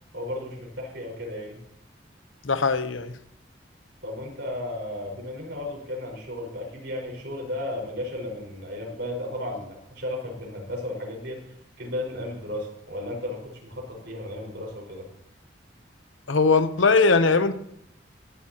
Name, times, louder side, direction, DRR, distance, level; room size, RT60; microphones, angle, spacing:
voice 1, 0.1-1.6 4.0-11.5 11.8-15.1, left 1 dB, 65° right, 5.0 m, -34 dB
voice 2, 2.4-3.1 16.3-17.5, left 4 dB, 90° left, 0.8 m, -20 dB
18.5 x 11.0 x 2.9 m
head